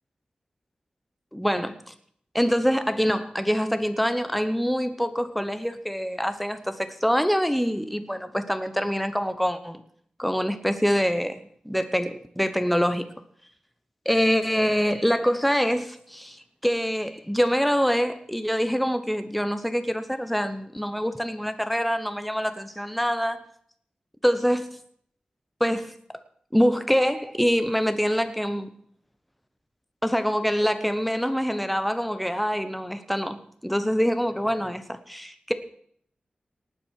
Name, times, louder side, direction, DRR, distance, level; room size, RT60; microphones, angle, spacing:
voice 1, 1.3-1.7 2.3-9.8 10.2-13.1 14.0-23.4 24.2-24.7 25.6-25.9 26.5-28.7 30.0-33.4 33.6-35.5, equal, ahead, 9 dB, 1.0 m, -25 dB
18.5 x 6.2 x 6.5 m, 0.63 s
wide cardioid pair, 85°, 3 cm